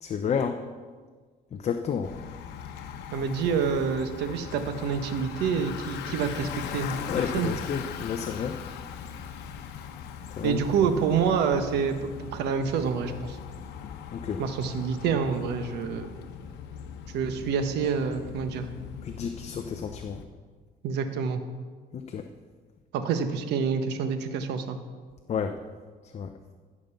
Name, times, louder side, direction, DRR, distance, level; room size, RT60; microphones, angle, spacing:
voice 1, 0.0-0.6 1.5-2.1 7.1-8.6 10.4-10.6 14.1-14.4 19.0-20.2 21.9-22.2 25.3-25.6 26.1-26.3, left 7 dB, 40° left, 6 dB, 0.6 m, -30 dB
Bicycle, 2.0-20.3, left 8 dB, 85° left, 0.9 m, -40 dB
voice 2, 3.1-7.5 10.4-13.4 14.4-16.1 17.1-18.7 20.8-21.4 22.9-24.8, right 6 dB, 80° right, 8 dB, 1.1 m, -27 dB
14.5 x 5.3 x 6.9 m, 1.5 s
cardioid pair, 110°, 17 cm